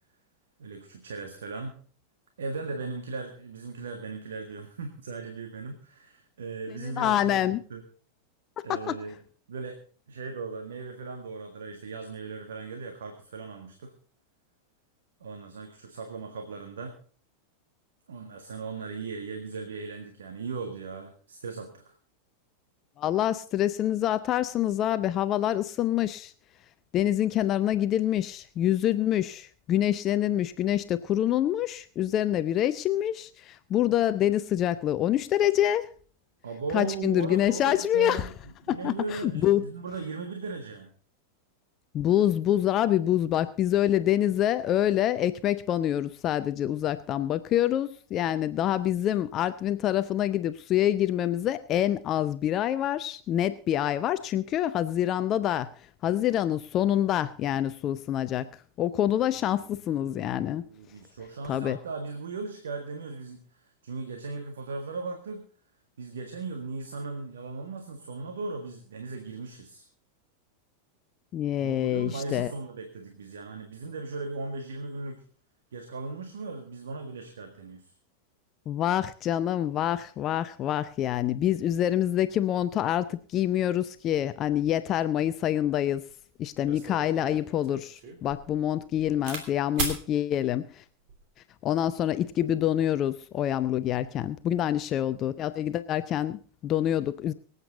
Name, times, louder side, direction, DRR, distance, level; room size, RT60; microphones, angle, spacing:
voice 1, 0.6-1.8 2.4-7.8 8.6-9.2 9.5-9.8 10.1-13.9 15.2-17.0 18.1-22.0 36.4-38.3 38.6-40.9 59.1-65.5 66.0-69.9 71.6-75.2 75.7-77.9, right 4 dB, 65° right, 6 dB, 1.7 m, -38 dB
voice 2, 6.7-7.6 8.6-9.0 23.0-26.3 26.9-35.9 36.7-38.3 38.7-39.7 41.9-55.7 56.0-58.5 58.8-60.6 61.5-61.8 71.3-72.5 78.7-86.0 86.4-90.8 91.6-97.3, left 11 dB, 30° left, 13 dB, 0.6 m, -26 dB
sound 1, 86.1-86.2 86.6-89.5 89.8-90.0 90.9-91.2, right 5 dB, 45° right, 3.0 m, -36 dB
24.0 x 8.2 x 4.0 m, 0.43 s
figure-of-eight pair, 90°, 0 cm